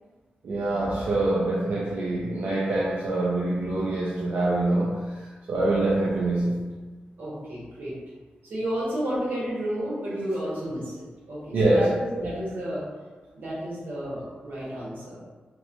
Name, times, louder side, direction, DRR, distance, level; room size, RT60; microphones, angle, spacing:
voice 1, 0.4-5.1 5.5-6.6 11.5-12.3, right 2 dB, 65° right, -6 dB, 0.4 m, -25 dB
voice 2, 7.2-7.9 8.4-12.8 13.3-15.2, equal, 90° right, -7 dB, 0.9 m, -32 dB
2.9 x 2.1 x 2.5 m, 1.3 s
wide cardioid pair, 150°, 3 cm